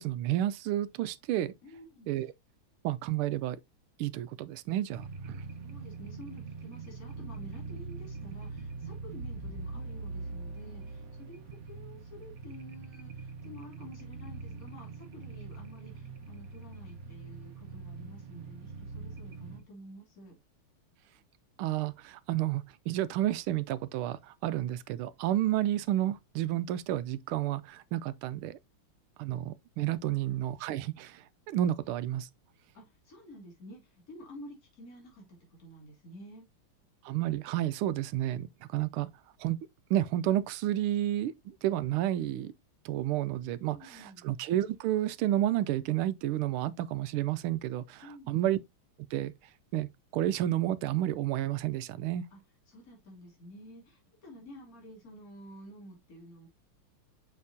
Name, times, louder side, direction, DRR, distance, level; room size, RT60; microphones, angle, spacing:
voice 1, 0.0-1.5 2.1-2.3 2.8-3.6 4.0-5.4 21.6-28.6 29.2-32.3 37.0-39.1 39.4-39.6 39.9-42.5 42.8-48.6 49.1-49.3 49.7-49.9 50.1-52.2, right 13 dB, 80° right, 1.5 m, -31 dB
voice 2, 1.6-2.1 5.5-20.4 30.0-30.1 32.7-36.5 43.6-44.3 48.0-48.5 52.3-52.4 52.7-56.5, equal, 40° left, 3.1 m, -50 dB
sound 1, 4.9-19.6, right 4 dB, 50° right, 1.3 m, -43 dB
6.5 x 5.8 x 2.7 m
omnidirectional pair, 2.4 m